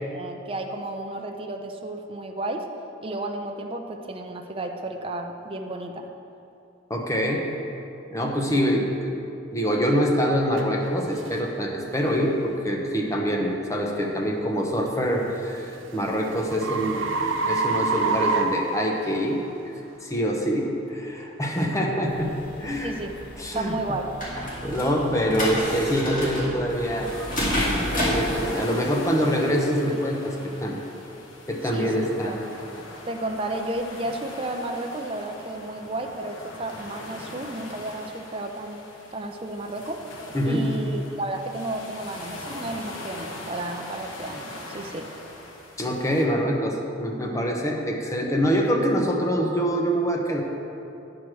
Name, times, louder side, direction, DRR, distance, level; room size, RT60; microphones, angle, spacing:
voice 1, 0.1-2.7 3.0-6.1 22.8-23.1 23.5-24.2 31.7-32.4 33.1-38.8 39.1-40.0 40.4-45.1, right 2 dB, 25° right, 3 dB, 0.5 m, -32 dB
voice 2, 6.9-7.4 8.1-9.1 9.5-17.0 17.5-19.4 20.0-22.3 22.6-23.0 23.4-23.7 24.6-27.1 28.0-30.8 31.5-32.4 40.3-40.6 45.8-50.4, equal, 15° left, 0 dB, 0.8 m, -25 dB
sound 1, 10.6-10.7 11.2-11.4 12.0-12.3 14.9-19.4, right 3 dB, 75° right, 0.7 m, -27 dB
sound 2, 22.1-28.3, equal, 40° left, 2.0 m, -30 dB
sound 3, 26.7-46.2, left 2 dB, 85° left, 1.1 m, -41 dB
9.2 x 4.9 x 6.1 m, 2.8 s
head